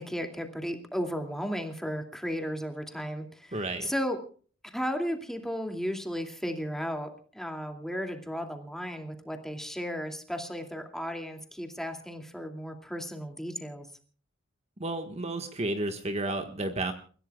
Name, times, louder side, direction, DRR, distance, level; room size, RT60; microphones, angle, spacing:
voice 1, 0.0-4.2 4.6-13.9, equal, ahead, 5 dB, 2.5 m, -34 dB
voice 2, 3.5-3.9 14.8-16.9, right 2 dB, 35° right, 6 dB, 1.5 m, -32 dB
29.5 x 16.0 x 2.4 m, 0.42 s
head